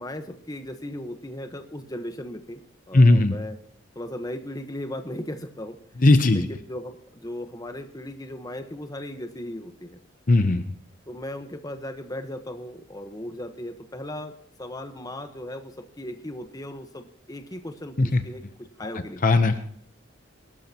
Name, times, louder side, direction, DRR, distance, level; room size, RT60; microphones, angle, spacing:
voice 1, 0.0-2.6 2.9-3.6 3.9-5.8 6.3-10.0 11.1-14.3 14.6-19.2, left 1 dB, 20° left, 7 dB, 1.0 m, -37 dB
voice 2, 2.9-3.3 6.0-6.5 10.3-10.7 18.0-18.2 18.8-18.9 19.2-19.6, left 2 dB, 45° left, 9 dB, 0.7 m, -18 dB
24.5 x 12.5 x 2.9 m, 0.66 s
head